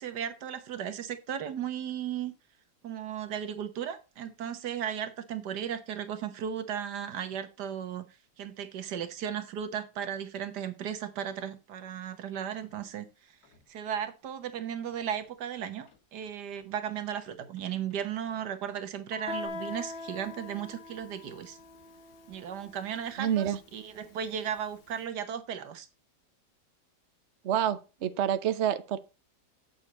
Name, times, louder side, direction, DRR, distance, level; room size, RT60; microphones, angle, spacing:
voice 1, 0.0-2.3 2.8-8.0 8.4-13.3 13.7-21.6 22.3-25.9, right 9 dB, 85° right, 1.6 m, -36 dB
sound 1, 12.6-12.9 13.4-13.7 14.9-18.0 19.1-19.5, left 1 dB, 70° left, 2.2 m, -49 dB
Guitar, 19.3-24.7, left 3 dB, 45° left, 0.8 m, -43 dB
voice 2, 23.2-23.6 27.4-29.0, right 10 dB, 55° right, 0.9 m, -28 dB
8.1 x 6.9 x 4.1 m
omnidirectional pair, 1.7 m